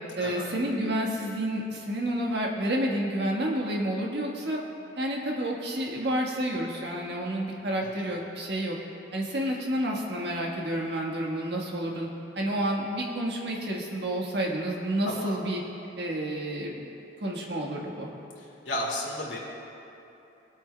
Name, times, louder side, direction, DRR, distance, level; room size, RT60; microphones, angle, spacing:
voice 1, 0.2-4.6 5.0-8.8 9.1-12.1 12.3-15.6 16.0-16.9 17.2-18.1, right 1 dB, 65° right, -2 dB, 1.5 m, -30 dB
voice 2, 15.0-15.4 18.4-19.4, left 1 dB, 85° left, -4 dB, 2.4 m, -34 dB
22.0 x 8.7 x 2.3 m, 2.9 s
head